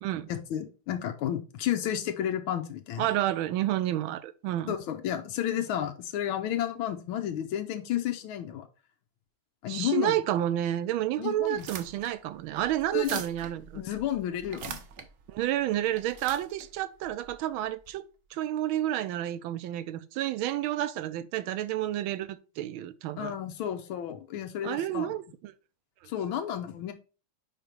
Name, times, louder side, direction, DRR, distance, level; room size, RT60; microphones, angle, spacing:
voice 1, 0.3-3.1 4.7-8.7 9.6-10.1 11.2-11.6 12.9-13.2 13.7-14.8 23.2-25.1 26.1-26.9, left 11 dB, 90° left, 1.6 m, -32 dB
voice 2, 3.0-4.7 9.7-13.8 15.3-18.0 18.3-23.4 24.6-25.5, right 13 dB, 85° right, 1.4 m, -30 dB
sound 1, 11.4-17.9, right 7 dB, 60° right, 0.8 m, -44 dB
5.1 x 5.0 x 4.4 m
omnidirectional pair, 2.2 m